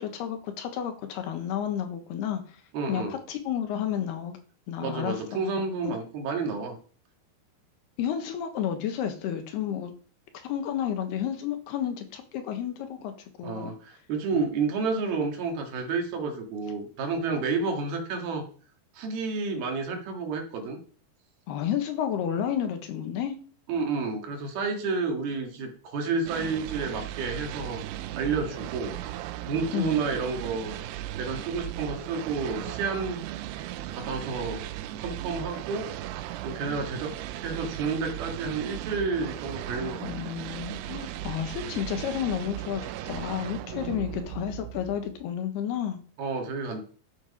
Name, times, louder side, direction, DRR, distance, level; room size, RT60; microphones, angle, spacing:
voice 1, 0.0-2.4 2.9-4.4 4.7-5.4 5.8-5.9 8.0-9.9 10.4-13.1 13.4-13.7 21.5-23.4 29.7-30.0 40.0-46.0, left 9 dB, 75° left, 7 dB, 3.3 m, -31 dB
voice 2, 2.7-3.2 4.8-6.8 13.4-18.4 18.9-20.8 23.7-27.8 28.1-28.9 29.4-30.7 31.1-33.2 33.9-34.6 35.0-35.9 36.4-40.3 43.9-44.1 46.2-46.8, right 4 dB, 65° right, 3 dB, 3.8 m, -30 dB
sound 1, 26.3-45.3, right 14 dB, 85° right, 2.8 m, -37 dB
12.0 x 7.5 x 5.5 m, 0.42 s
omnidirectional pair, 4.8 m